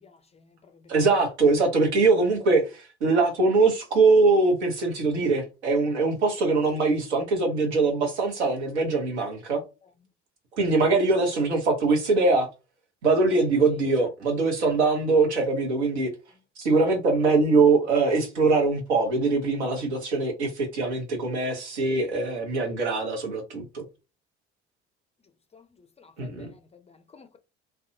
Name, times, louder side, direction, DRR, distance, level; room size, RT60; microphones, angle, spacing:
voice 1, 0.0-0.9 25.5-25.6 26.0-27.4, left 5 dB, 20° left, 0.4 m, -53 dB
voice 2, 0.9-9.6 10.6-12.5 13.0-16.1 16.6-23.8 26.2-26.5, right 3 dB, 80° right, 1.0 m, -22 dB
2.5 x 2.3 x 2.7 m
figure-of-eight pair, 55°, 34 cm